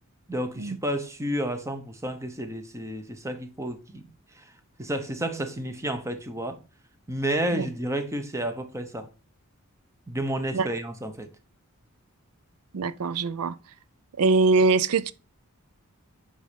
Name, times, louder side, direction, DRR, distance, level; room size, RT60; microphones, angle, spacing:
voice 1, 0.3-4.1 4.3-4.5 4.8-6.6 7.1-9.1 10.1-11.3, right 1 dB, 15° right, 1.1 m, -31 dB
voice 2, 12.7-13.5 14.2-15.1, right 4 dB, 80° right, 0.5 m, -22 dB
9.6 x 5.5 x 5.1 m
head